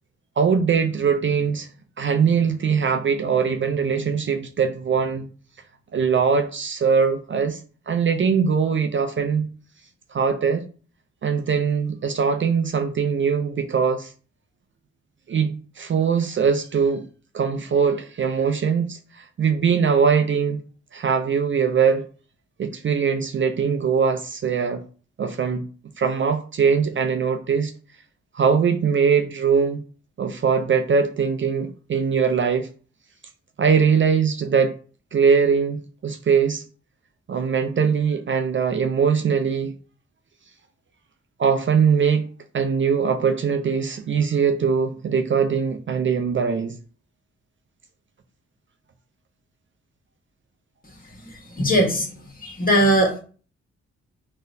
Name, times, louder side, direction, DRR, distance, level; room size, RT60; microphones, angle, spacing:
voice 1, 0.4-1.7 2.0-5.3 5.9-7.6 7.9-9.5 10.1-10.6 11.2-14.1 15.3-17.0 17.3-20.6 20.9-22.1 22.6-24.8 25.2-25.6 26.0-27.7 28.3-29.8 30.2-32.7 33.6-34.8 35.1-36.6 37.3-39.7 41.4-42.3 42.5-46.7, right 6 dB, 40° right, 7 dB, 0.4 m, -21 dB
voice 2, 51.1-52.1 52.4-53.2, equal, 30° left, 1 dB, 1.3 m, -20 dB
3.9 x 2.1 x 2.6 m, 0.39 s
supercardioid pair, 50°, 29 cm